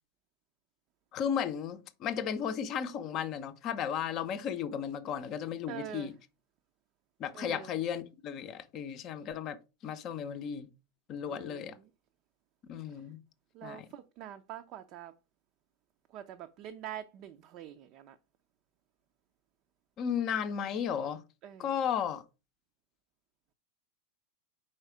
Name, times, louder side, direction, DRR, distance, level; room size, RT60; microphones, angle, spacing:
voice 1, 1.1-6.2 7.2-9.6 9.8-10.7 11.1-11.8 12.7-13.2 13.6-13.9 20.0-21.2 21.6-22.2, left 8 dB, 40° left, 0.6 m, -34 dB
voice 2, 5.7-6.1 7.3-7.7 11.3-11.9 13.5-15.1 16.1-18.2 21.4-21.7, right 11 dB, 45° right, 0.5 m, -45 dB
4.8 x 4.4 x 4.8 m
figure-of-eight pair, 90°, 0 cm